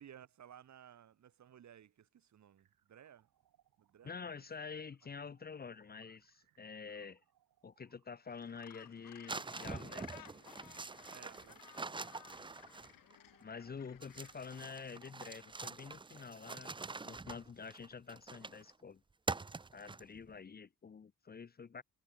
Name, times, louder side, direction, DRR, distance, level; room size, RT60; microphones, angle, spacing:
voice 1, 0.0-3.3 3.8-4.4 11.1-12.1, right 9 dB, 60° right, 1.5 m, -58 dB
sound 1, 2.6-16.9, right 11 dB, 80° right, 7.5 m, -76 dB
voice 2, 4.0-7.2 7.6-10.1 13.4-16.7 17.0-19.0 19.7-21.8, left 5 dB, 30° left, 0.7 m, -48 dB
Gull seagull, 8.3-15.0, left 12 dB, 80° left, 3.4 m, -58 dB
sound 2, 9.3-13.2 14.0-18.7 19.3-20.3, right 3 dB, 15° right, 0.6 m, -45 dB
cardioid pair, 85°, 33 cm